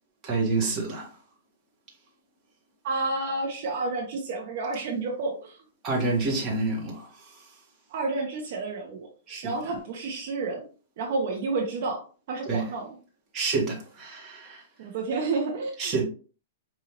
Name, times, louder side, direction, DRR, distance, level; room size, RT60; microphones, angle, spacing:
voice 1, 0.2-1.1 5.8-7.4 9.3-9.5 12.5-12.6 13.3-14.6 15.8-16.0, right 3 dB, 25° right, 1.3 m, -28 dB
voice 2, 2.8-5.6 7.9-9.1 9.4-10.6 11.0-12.0 12.3-12.9 14.8-15.7, right 3 dB, 50° right, 0.9 m, -30 dB
5.1 x 2.6 x 2.9 m
hypercardioid pair, 155°, 0 cm